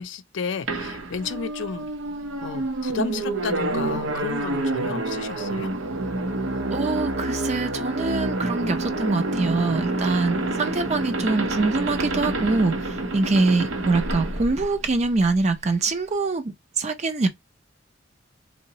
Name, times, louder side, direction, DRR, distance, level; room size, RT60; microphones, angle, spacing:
voice 1, 0.0-1.9 2.4-5.7 10.3-10.8, left 5 dB, 70° left, 0.4 m, -32 dB
sound 1, 0.7-15.4, right 2 dB, 85° right, 0.6 m, -28 dB
voice 2, 6.7-17.3, right 3 dB, 35° right, 0.5 m, -24 dB
3.9 x 2.0 x 2.7 m
head